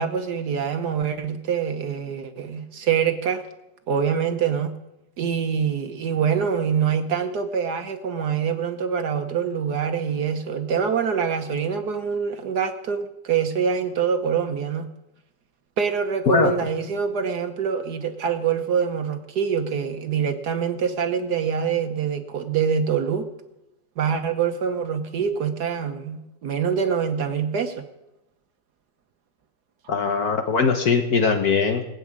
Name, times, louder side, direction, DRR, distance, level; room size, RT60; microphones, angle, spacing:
voice 1, 0.0-3.4 3.9-4.7 5.2-14.9 15.8-23.3 24.0-27.8, right 7 dB, 65° right, 7 dB, 1.5 m, -25 dB
voice 2, 29.9-31.8, left 5 dB, 60° left, 5 dB, 1.5 m, -20 dB
20.0 x 7.2 x 8.8 m, 0.93 s
omnidirectional pair, 1.9 m